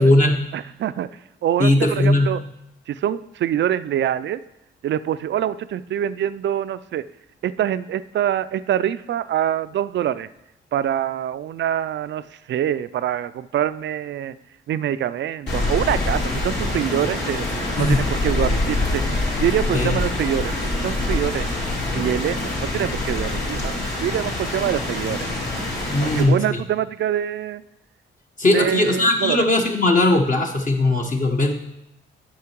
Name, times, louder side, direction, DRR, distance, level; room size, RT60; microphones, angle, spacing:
voice 1, 0.0-0.3 1.6-2.3 17.8-18.1 19.7-20.0 25.9-26.6 28.4-31.5, left 2 dB, 40° left, 2 dB, 1.1 m, -18 dB
voice 2, 0.5-2.4 2.9-4.4 4.8-7.0 7.4-10.3 10.7-14.4 14.7-17.5 17.8-19.0 19.4-21.5 21.9-25.3 26.0-27.6 28.5-29.5, right 10 dB, 60° right, 15 dB, 0.4 m, -25 dB
Rain, 15.5-26.2, left 2 dB, 55° left, 3.0 m, -25 dB
8.5 x 5.7 x 4.5 m, 0.85 s
supercardioid pair, 60°, 21 cm